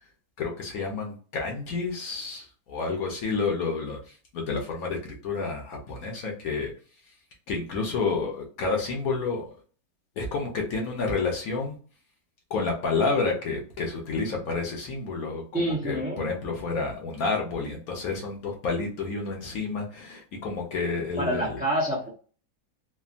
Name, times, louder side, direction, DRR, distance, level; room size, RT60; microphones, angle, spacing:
voice 1, 0.4-4.0 4.3-6.7 7.5-9.5 10.2-11.8 12.5-21.6, left 4 dB, 65° left, 1 dB, 1.2 m, -30 dB
voice 2, 15.5-16.3 21.2-22.1, right 1 dB, 10° right, -4 dB, 0.4 m, -27 dB
3.4 x 2.3 x 2.4 m, 0.40 s
omnidirectional pair, 1.8 m